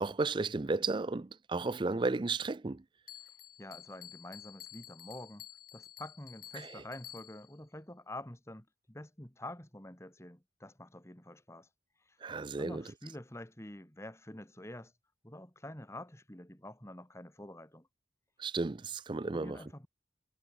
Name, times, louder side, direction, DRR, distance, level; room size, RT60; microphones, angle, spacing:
voice 1, 0.0-2.8 6.5-6.8 12.2-12.8 18.4-19.6, right 3 dB, 25° right, 0.4 m, -34 dB
Bell, 3.1-7.6, left 11 dB, 50° left, 6.7 m, -51 dB
voice 2, 3.6-5.5 5.7-11.7 12.1-12.2 12.6-14.9 15.2-17.9 19.3-19.9, left 1 dB, 15° left, 2.4 m, -47 dB
head